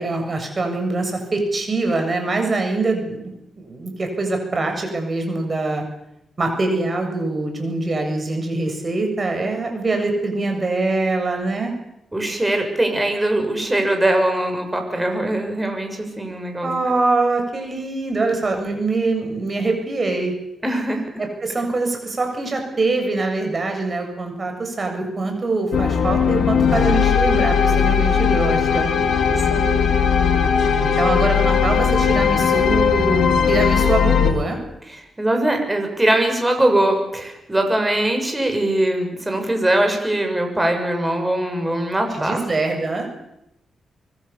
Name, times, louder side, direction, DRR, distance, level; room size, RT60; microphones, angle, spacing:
voice 1, 0.0-3.2 3.6-5.8 6.4-11.7 16.6-20.3 21.2-28.9 30.8-34.6 42.1-43.2, right 3 dB, 35° right, 4 dB, 7.5 m, -23 dB
voice 2, 12.1-16.7 20.6-21.1 29.4-29.8 34.9-42.4, right 1 dB, 15° right, 4 dB, 7.0 m, -21 dB
sound 1, 25.7-34.3, left 7 dB, 80° left, 3.9 m, -18 dB
25.0 x 24.0 x 7.2 m, 0.83 s
cardioid pair, 95°, 0 cm